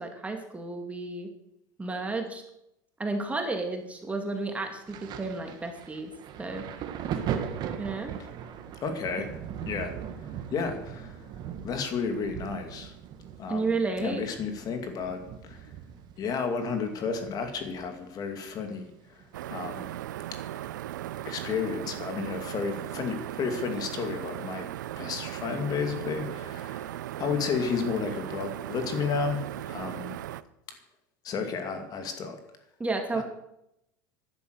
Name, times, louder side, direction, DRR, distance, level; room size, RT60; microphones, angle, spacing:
voice 1, 0.0-1.3 1.8-2.4 3.0-6.1 6.4-6.7 7.8-8.1 13.5-14.2 32.8-33.2, right 3 dB, 15° right, 4 dB, 2.5 m, -32 dB
Thunder, 4.9-18.2 18.5-19.8 20.7-20.8, right 8 dB, 45° right, 1.8 m, -39 dB
voice 2, 8.8-9.3 9.6-9.9 10.2-11.2 11.6-12.9 13.4-13.7 14.0-15.7 16.2-19.2 19.5-19.9 21.3-24.7 25.0-30.2 31.2-32.4 33.1-33.2, left 5 dB, 40° left, 6 dB, 2.5 m, -32 dB
sound 1, 19.3-30.4, right 13 dB, 85° right, 0.6 m, -37 dB
12.5 x 11.0 x 6.6 m, 0.81 s
supercardioid pair, 105°, 10 cm